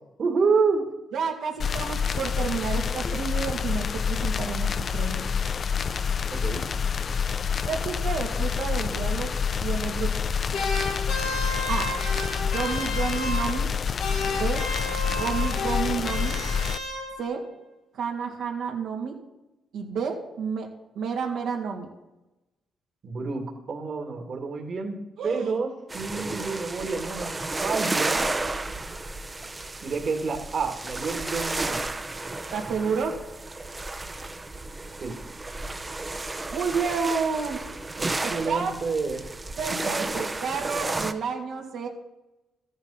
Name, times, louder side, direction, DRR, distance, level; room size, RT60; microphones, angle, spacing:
voice 1, 0.2-0.9 6.3-6.6 23.0-25.0 25.2-27.3 27.6-28.3 29.8-31.8 35.0-35.2 38.0-39.3, right 4 dB, 50° right, 1 dB, 2.3 m, -28 dB
voice 2, 1.1-5.3 7.7-9.3 9.6-10.1 11.7-11.9 12.4-13.7 14.2-14.6 15.1-16.4 17.2-17.4 17.9-19.2 19.7-20.7 20.9-21.9 25.2-25.5 32.5-33.2 36.5-37.6 38.2-38.7 39.6-41.9, right 6 dB, 75° right, -1 dB, 2.5 m, -30 dB
sound 1, 1.6-16.8, left 6 dB, 45° left, 0.6 m, -27 dB
sound 2, 10.5-13.7 14.0-17.4, left 2 dB, 75° left, 2.7 m, -32 dB
sound 3, 25.9-41.1, right 2 dB, 20° right, 1.0 m, -32 dB
13.5 x 9.5 x 5.8 m, 0.96 s
cardioid pair, 90°, 0 cm